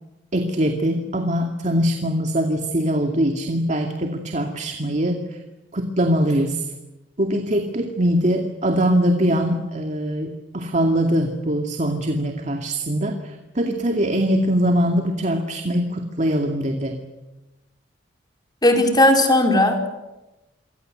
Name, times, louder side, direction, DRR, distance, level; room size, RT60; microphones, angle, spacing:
voice 1, 0.3-5.2 5.7-6.7 7.2-17.0, equal, 40° right, 4 dB, 2.4 m, -22 dB
voice 2, 18.6-19.9, left 1 dB, 20° left, 4 dB, 4.6 m, -16 dB
28.5 x 24.5 x 7.9 m, 1.0 s
head